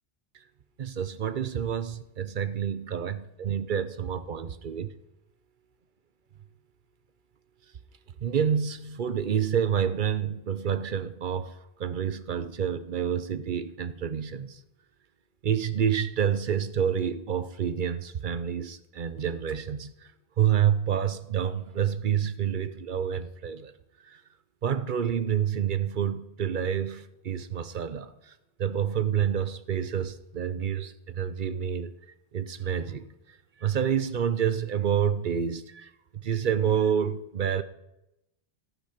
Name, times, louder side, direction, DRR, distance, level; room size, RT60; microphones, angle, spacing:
voice 1, 0.8-4.9 8.2-14.6 15.4-20.1 20.4-23.7 24.0-24.2 24.6-28.3 28.6-31.9 32.3-33.1 33.6-37.6, right 8 dB, 55° right, 0.8 m, -28 dB
14.0 x 9.2 x 5.7 m
omnidirectional pair, 1.1 m